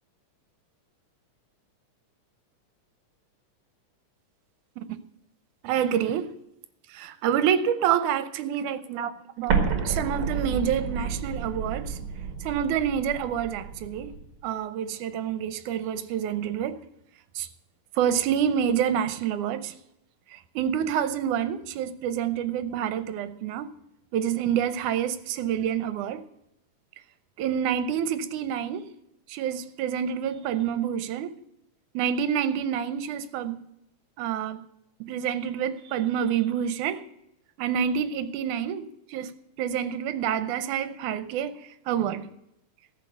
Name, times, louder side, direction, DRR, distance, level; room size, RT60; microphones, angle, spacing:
voice 1, 5.6-6.3 6.9-12.0 12.4-14.2 14.4-16.8 17.4-17.5 18.0-19.8 20.3-23.7 24.1-26.2 27.4-28.9 29.3-31.4 31.9-33.6 34.2-34.6 35.0-37.0 37.6-42.3, right 9 dB, 75° right, 2.2 m, -28 dB
Explosion, 9.5-14.3, right 5 dB, 50° right, 2.1 m, -30 dB
13.5 x 6.6 x 7.8 m
omnidirectional pair, 3.7 m